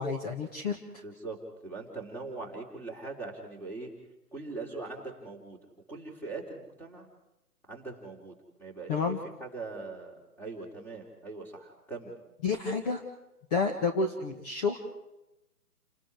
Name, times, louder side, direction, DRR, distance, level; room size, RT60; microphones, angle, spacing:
voice 1, 0.0-1.0 8.9-9.2 12.4-13.0 13.5-14.8, left 4 dB, 25° left, 2 dB, 1.8 m, -30 dB
voice 2, 1.0-1.4 1.6-3.9 4.3-5.6 5.9-7.1 7.7-12.1, right 3 dB, 5° left, 0 dB, 3.7 m, -41 dB
30.0 x 20.0 x 4.9 m, 0.94 s
figure-of-eight pair, 150°, 46 cm